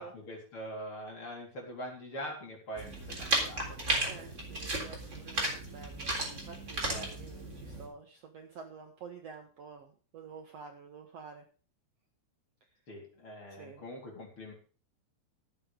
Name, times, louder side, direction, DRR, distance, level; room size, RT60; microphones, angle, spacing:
voice 1, 0.0-4.4 6.8-7.1 12.9-14.5, equal, 30° left, -1 dB, 4.3 m, -43 dB
sound 1, 2.8-7.9, right 2 dB, 20° right, 3.4 m, -34 dB
voice 2, 4.0-6.1 6.4-11.4 13.6-13.8, right 5 dB, 85° right, 4 dB, 1.4 m, -49 dB
15.0 x 7.8 x 5.2 m, 0.39 s
omnidirectional pair, 4.9 m